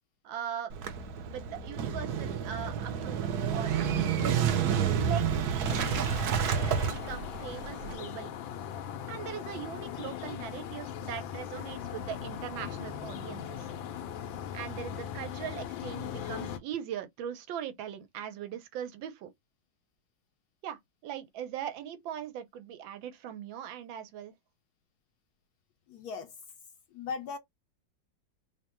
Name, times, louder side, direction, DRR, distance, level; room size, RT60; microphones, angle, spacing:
voice 1, 0.2-0.7 1.3-4.2 5.0-8.3 9.1-13.7 14.5-19.3 20.6-24.3, right 9 dB, 85° right, 1.4 m, -40 dB
Motorcycle / Engine starting, 0.7-7.9, right 7 dB, 70° right, 1.0 m, -29 dB
sound 1, 5.7-16.6, left 9 dB, 90° left, 1.4 m, -39 dB
voice 2, 25.9-26.3 26.9-27.4, left 5 dB, 75° left, 0.9 m, -37 dB
3.5 x 2.1 x 4.2 m
omnidirectional pair, 2.1 m